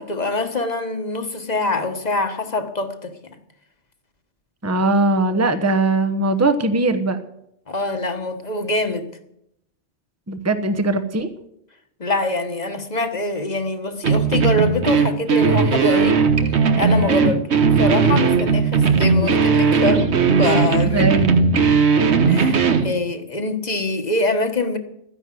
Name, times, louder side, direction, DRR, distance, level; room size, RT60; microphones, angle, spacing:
voice 1, 0.0-3.1 7.7-9.1 12.0-16.2 16.8-17.4 17.8-20.1 20.4-21.2 22.3-24.8, left 2 dB, 35° left, 7 dB, 1.5 m, -24 dB
voice 2, 4.6-7.2 10.3-11.3 17.2-17.3 20.9-21.6, right 2 dB, 15° right, 9 dB, 0.9 m, -20 dB
sound 1, 14.0-22.9, right 5 dB, 70° right, 1.4 m, -17 dB
13.5 x 10.5 x 7.7 m, 0.78 s
omnidirectional pair, 1.2 m